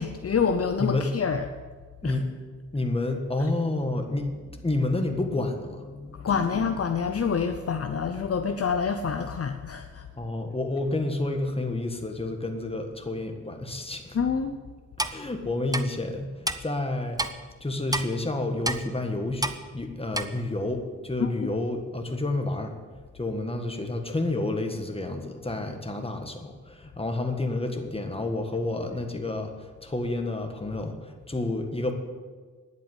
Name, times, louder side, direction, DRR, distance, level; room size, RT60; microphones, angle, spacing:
voice 1, 0.0-1.5 2.0-2.2 3.4-3.5 6.1-10.1 14.1-14.6 21.2-21.5, left 6 dB, 50° left, 7 dB, 0.7 m, -27 dB
voice 2, 2.7-6.3 10.1-14.2 15.1-17.2 17.6-22.8 23.1-29.5 29.8-31.9, left 2 dB, 20° left, 4 dB, 1.6 m, -30 dB
Clock, 15.0-15.2 15.7-15.8 16.5-16.6 17.2-17.3 17.9-18.1 18.6-18.8 19.4-19.6 20.1-20.3, right 2 dB, 10° right, 0.7 m, -27 dB
10.0 x 8.3 x 8.2 m, 1.4 s
cardioid pair, 75°, 31 cm